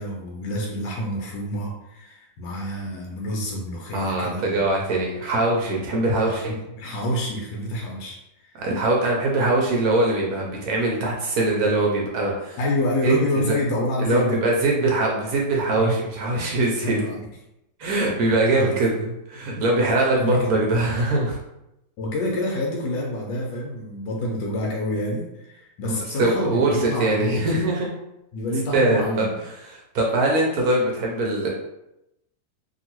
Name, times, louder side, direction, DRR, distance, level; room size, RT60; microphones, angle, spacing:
voice 1, 0.0-4.6 5.8-8.2 8.4-8.5 12.6-14.4 15.8-15.9 16.3-16.4 16.8-17.3 18.5-18.8 20.2-20.6 22.0-27.6 28.3-29.4, left 1 dB, 80° left, -2 dB, 1.2 m, -27 dB
voice 2, 3.9-6.5 8.6-12.6 13.0-13.1 13.4-13.5 14.0-17.0 17.8-21.4 25.9-27.9 28.7-31.5, right 2 dB, 70° right, -1 dB, 0.9 m, -22 dB
2.8 x 2.6 x 2.9 m, 0.88 s
omnidirectional pair, 1.9 m